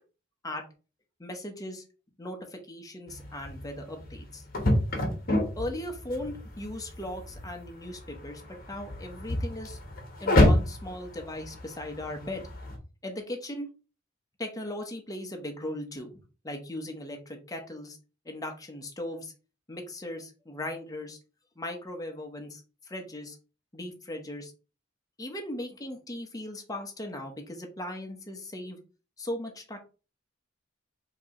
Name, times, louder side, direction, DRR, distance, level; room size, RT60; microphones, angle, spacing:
voice 1, 1.2-1.8 2.2-4.4 5.6-9.8 10.2-12.5 13.0-13.7 14.4-18.0 18.2-19.3 19.7-21.2 21.6-23.4 23.7-24.5 25.2-28.8 29.2-29.8, left 1 dB, 20° left, 3 dB, 1.0 m, -38 dB
sound 1, 3.1-12.8, left 1 dB, 50° left, 1.4 m, -29 dB
4.8 x 2.9 x 3.7 m, 0.33 s
head